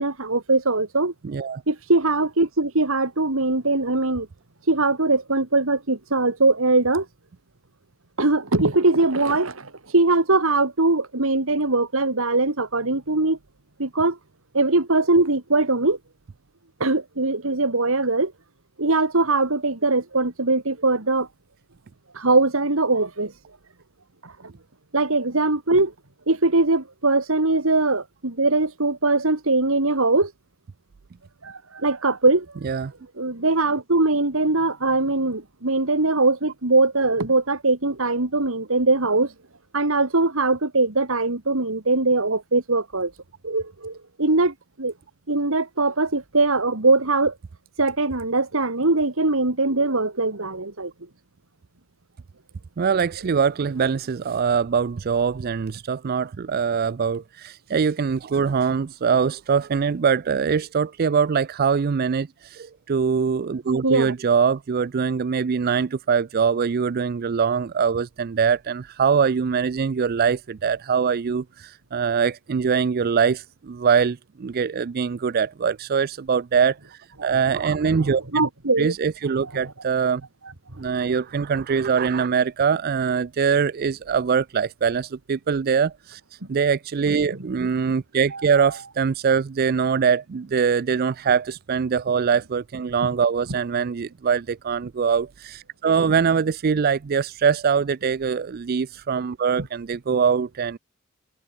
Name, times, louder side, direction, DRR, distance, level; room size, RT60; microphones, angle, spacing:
voice 1, 0.0-1.1 1.7-4.3 4.7-7.1 8.2-13.4 13.8-14.2 14.5-16.0 16.8-18.3 18.8-21.3 22.1-23.3 24.2-24.5 24.9-25.9 26.3-30.3 31.4-32.5 33.2-39.3 39.7-43.1 43.4-44.9 45.3-47.3 47.8-50.9 63.8-64.1 77.2-77.3 78.3-78.9 79.6-79.7 96.0-96.1 99.6-99.7, right 2 dB, 65° right, 2.3 m, -21 dB
voice 2, 1.2-1.6 32.6-32.9 52.8-78.2 78.8-80.2 80.8-100.8, right 6 dB, 45° right, 0.4 m, -23 dB
head